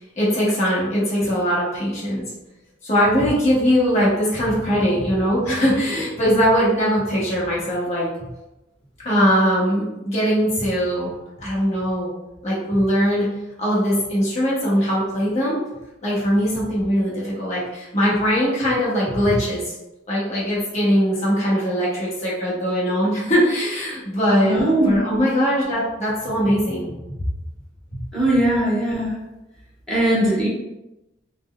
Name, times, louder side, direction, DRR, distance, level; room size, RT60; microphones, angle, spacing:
voice 1, 0.2-2.2 2.8-8.1 9.0-11.1 11.4-12.1 12.4-13.3 13.6-15.6 16.0-19.7 20.1-24.6 24.8-27.3 27.9-28.0, equal, 35° left, -8 dB, 1.0 m, -21 dB
voice 2, 24.4-25.3 28.1-29.2 29.9-30.5, right 1 dB, 5° left, -8 dB, 1.0 m, -20 dB
4.0 x 2.2 x 2.2 m, 0.97 s
head